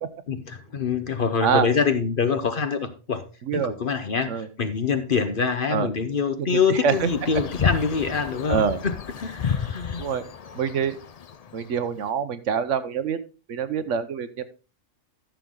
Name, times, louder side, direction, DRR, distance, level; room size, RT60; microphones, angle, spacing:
voice 1, 0.3-3.2 3.5-10.0, left 5 dB, 45° left, 10 dB, 0.9 m, -25 dB
voice 2, 3.4-3.7 4.3-4.5 5.7-5.9 6.4-7.1 8.5-8.8 10.0-10.2 10.5-11.0 11.5-13.2 13.5-14.4, right 7 dB, 65° right, 12 dB, 1.1 m, -25 dB
sound 1, 6.9-12.0, left 7 dB, 90° left, 0.3 m, -31 dB
13.5 x 6.5 x 3.7 m, 0.33 s
omnidirectional pair, 1.4 m